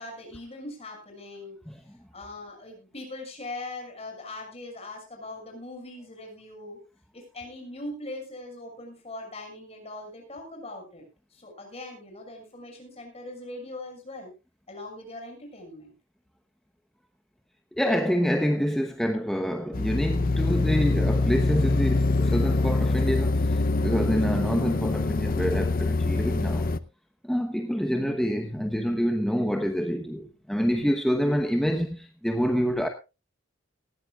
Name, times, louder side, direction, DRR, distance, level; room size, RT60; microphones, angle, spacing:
voice 1, 0.0-1.6 2.1-6.8 7.1-11.0 11.3-14.3 14.7-15.9, left 2 dB, 30° left, 6.6 m, -41 dB
voice 2, 17.8-26.7 27.2-32.9, equal, ahead, 1.0 m, -27 dB
sound 1, 19.7-26.8, left 3 dB, 45° left, 0.7 m, -24 dB
19.0 x 15.0 x 2.4 m
head